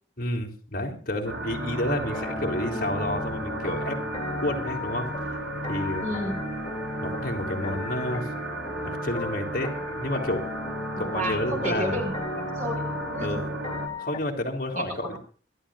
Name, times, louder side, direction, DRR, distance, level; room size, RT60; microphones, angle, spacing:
voice 1, 0.2-4.0 4.4-5.1 5.7-6.2 7.0-8.3 8.8-9.7 10.0-10.5 11.0-12.0 13.2-13.4 14.0-15.2, left 1 dB, 50° left, 3 dB, 3.4 m, -30 dB
sound 1, 1.2-13.9, right 2 dB, 65° right, 4.9 m, -34 dB
sound 2, 2.0-14.2, left 3 dB, 30° left, 3.1 m, -36 dB
voice 2, 6.0-6.4 11.0-12.8 13.2-13.3 14.8-15.2, equal, 40° right, 3 dB, 5.5 m, -31 dB
24.5 x 13.5 x 2.6 m, 0.41 s
head